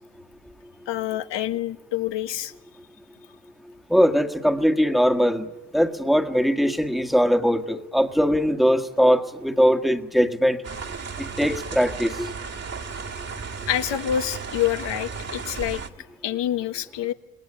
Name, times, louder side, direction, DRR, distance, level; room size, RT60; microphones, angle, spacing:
voice 1, 0.9-2.5 13.7-15.8 16.2-17.1, left 11 dB, 65° left, 9 dB, 1.6 m, -27 dB
voice 2, 3.9-5.5 5.7-10.6 11.2-12.3, equal, ahead, 6 dB, 1.8 m, -21 dB
sound 1, 10.6-15.9, right 5 dB, 35° right, 2.1 m, -34 dB
27.5 x 21.0 x 9.0 m, 1.0 s
cardioid pair, 100°, 46 cm